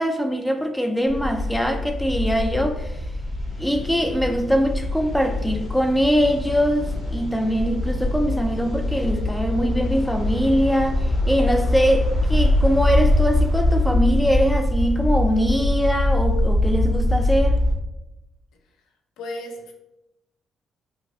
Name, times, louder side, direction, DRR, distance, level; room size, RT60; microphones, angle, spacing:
voice 1, 0.0-3.1 3.6-17.6, equal, 5° left, 0.3 m, -22 dB
sound 1, 1.1-17.7, left 1 dB, 45° left, 1.1 m, -23 dB
voice 2, 19.2-19.7, left 1 dB, 85° left, 0.4 m, -34 dB
3.0 x 2.9 x 2.6 m
cardioid pair, 90°, 0 cm